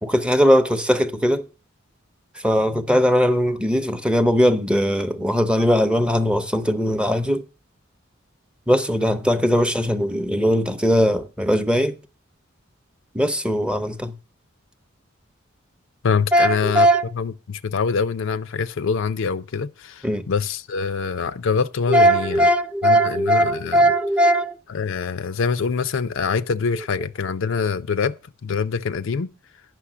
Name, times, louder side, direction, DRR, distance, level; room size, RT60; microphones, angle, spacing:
voice 1, 0.0-1.4 2.4-7.4 8.7-11.9 13.1-14.1 16.3-17.0 20.0-20.2 21.9-24.6, equal, 5° right, 0.7 m, -19 dB
voice 2, 16.0-16.9 17.1-22.5 22.8-23.9 24.7-29.3, left 5 dB, 65° left, 0.5 m, -25 dB
10.0 x 6.1 x 6.0 m
head